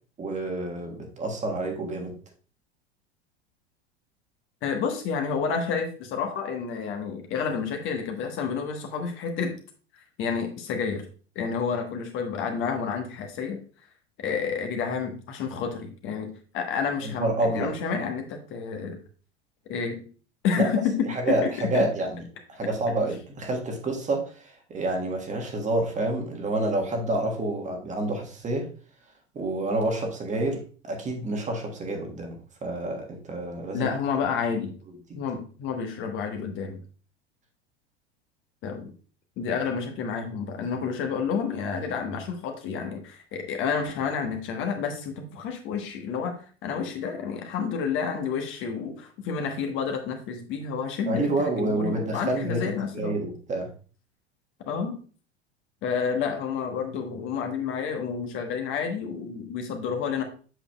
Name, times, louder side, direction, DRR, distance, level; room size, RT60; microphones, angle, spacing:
voice 1, 0.2-2.1 17.0-17.7 20.6-20.7 21.1-22.2 22.5-28.7 29.3-33.9 51.1-53.7, right 2 dB, 20° right, 2 dB, 1.5 m, -28 dB
voice 2, 4.6-9.6 9.9-11.0 11.3-13.6 14.2-19.0 19.7-20.0 20.4-21.8 33.7-34.7 35.1-36.8 38.6-38.9 39.4-53.2 54.7-55.0 55.8-60.2, left 6 dB, 40° left, 4 dB, 1.2 m, -30 dB
7.8 x 6.7 x 2.3 m, 0.39 s
figure-of-eight pair, 80°, 32 cm